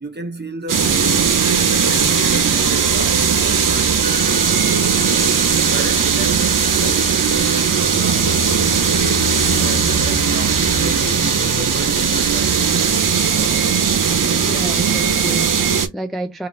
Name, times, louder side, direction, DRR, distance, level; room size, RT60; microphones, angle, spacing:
voice 1, 0.0-1.4 1.9-4.1 4.9-5.3 5.6-8.6 9.4-13.0, right 3 dB, 30° right, 0.8 m, -32 dB
sound 1, 0.7-15.9, right 6 dB, 80° right, 0.6 m, -18 dB
sound 2, 4.0-12.3, left 1 dB, 90° left, 1.6 m, -36 dB
sound 3, 8.0-12.0, left 6 dB, 55° left, 0.5 m, -31 dB
voice 2, 14.5-16.5, right 1 dB, ahead, 0.4 m, -30 dB
2.8 x 2.4 x 3.0 m
wide cardioid pair, 55°, 32 cm